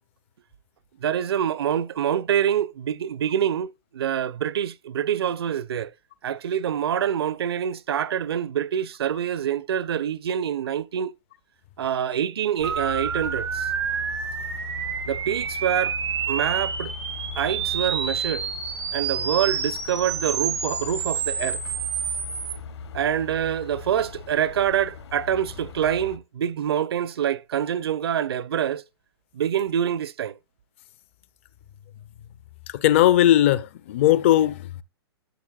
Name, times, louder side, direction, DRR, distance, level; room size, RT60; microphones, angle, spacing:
voice 1, 1.0-5.9 6.2-11.1 11.8-13.7 15.1-16.0 16.3-16.9 17.4-18.5 18.9-21.6 22.9-28.8 29.3-30.4, right 9 dB, 65° right, 0.6 m, -26 dB
sound 1, 12.6-26.2, left 5 dB, 75° left, 1.3 m, -39 dB
sound 2, 12.6-22.5, right 7 dB, 90° right, 2.1 m, -29 dB
voice 2, 32.7-34.8, left 12 dB, 30° left, 0.4 m, -19 dB
13.0 x 7.0 x 2.3 m
hypercardioid pair, 165°, 14 cm